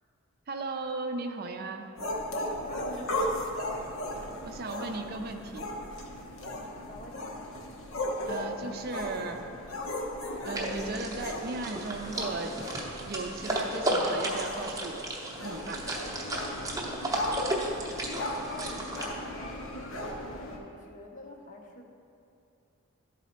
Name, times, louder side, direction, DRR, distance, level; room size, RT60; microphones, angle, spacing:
voice 1, 0.5-1.9 4.5-5.7 8.3-9.4 10.4-12.6 13.1-15.0 15.4-15.9, right 3 dB, 45° right, 5 dB, 0.4 m, -36 dB
sound 1, 1.9-20.6, left 1 dB, 75° left, 0.9 m, -37 dB
voice 2, 2.7-3.5 6.4-7.5 18.0-21.8, left 1 dB, 40° left, 2 dB, 0.7 m, -46 dB
sound 2, 10.5-19.0, right 1 dB, 15° right, 0.7 m, -34 dB
11.5 x 4.1 x 4.3 m, 2.6 s
head